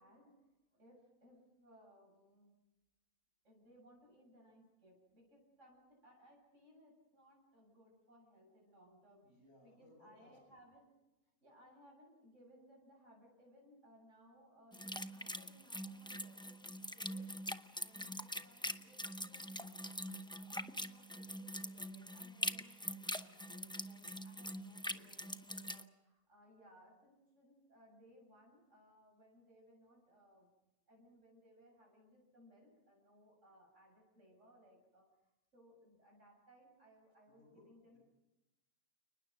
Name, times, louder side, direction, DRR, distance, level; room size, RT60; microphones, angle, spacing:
voice 1, 0.0-2.6 3.4-9.3 9.6-10.9 11.4-30.5 30.9-35.1 35.5-38.0, equal, 60° right, -2 dB, 8.0 m, -65 dB
voice 2, 9.2-10.4 24.3-25.1 37.3-38.0, left 1 dB, 85° left, 1 dB, 8.4 m, -66 dB
sound 1, 14.7-25.8, equal, 5° left, 0.4 m, -44 dB
30.0 x 20.0 x 6.4 m, 1.0 s
omnidirectional pair, 1.5 m